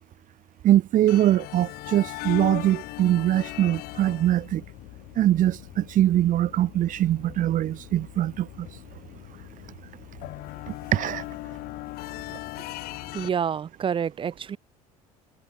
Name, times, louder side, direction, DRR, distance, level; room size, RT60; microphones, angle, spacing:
voice 1, 0.6-4.6 5.2-8.7 10.9-11.2, right 12 dB, 45° right, 2.2 m, -22 dB
sound 1, 1.1-13.3, left 20 dB, 55° left, 2.8 m, -39 dB
voice 2, 13.1-14.6, right 7 dB, 25° right, 1.0 m, -28 dB
figure-of-eight pair, 65°, 19 cm